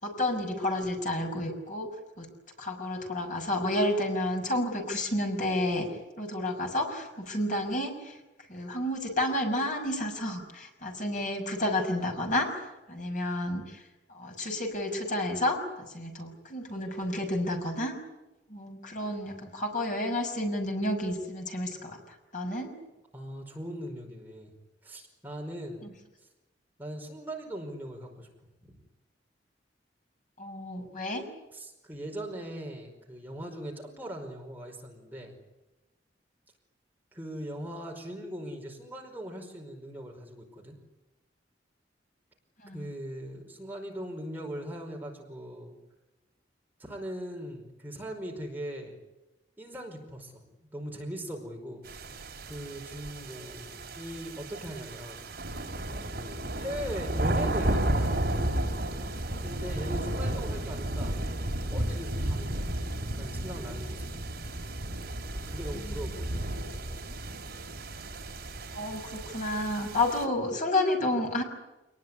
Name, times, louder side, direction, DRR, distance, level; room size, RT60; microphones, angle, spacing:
voice 1, 0.0-1.9 2.2-2.3 2.6-5.9 6.2-8.2 8.5-12.6 12.9-13.8 14.1-17.9 18.5-22.7 30.4-31.2 42.6-42.8 68.7-71.4, left 1 dB, 45° left, 3 dB, 5.9 m, -30 dB
voice 2, 23.1-24.5 24.8-25.9 26.8-28.3 28.6-28.7 31.5-35.4 37.1-40.8 42.7-45.8 46.8-49.0 49.6-50.4 50.7-55.3 56.1-58.4 59.4-61.3 61.7-62.7 63.1-64.1 65.4-66.5, equal, 10° right, 1 dB, 5.0 m, -40 dB
sound 1, 51.9-70.3, right 1 dB, 55° right, 3.9 m, -33 dB
27.5 x 20.0 x 9.9 m, 1.0 s
head